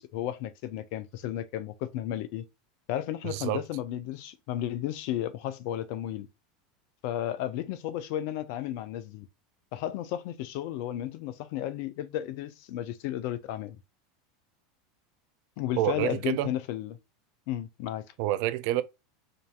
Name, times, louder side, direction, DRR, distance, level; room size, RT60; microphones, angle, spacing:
voice 1, 0.0-2.4 2.9-6.3 7.0-9.3 9.7-13.8 15.6-17.0 17.5-18.0, left 12 dB, 60° left, 0.6 m, -33 dB
voice 2, 3.2-3.6 15.8-16.5 18.2-18.8, right 14 dB, 60° right, 0.4 m, -28 dB
5.2 x 2.7 x 2.3 m
hypercardioid pair, 90°, 0 cm